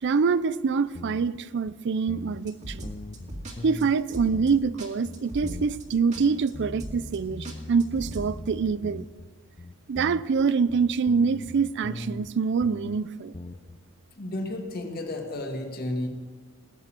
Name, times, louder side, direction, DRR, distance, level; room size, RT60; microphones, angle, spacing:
voice 1, 0.0-2.9 3.6-9.1 9.9-13.3, right 5 dB, 55° right, 0.4 m, -25 dB
sound 1, 0.9-1.4 1.7-1.8 2.1-2.5 2.8-4.0 4.3-4.8 5.0-5.9 6.2-9.3 9.6-12.3 12.6-13.0 13.3-13.8, left 2 dB, 25° left, 0.5 m, -40 dB
sound 2, 2.5-3.5 3.8-3.9 4.1-4.5 4.8-4.9 5.1-5.8 6.1-6.2 6.5-6.6 6.8-7.2 7.4-8.3, equal, 35° right, 2.2 m, -38 dB
voice 2, 14.2-16.1, left 1 dB, 45° left, 2.0 m, -32 dB
19.5 x 6.9 x 8.9 m
head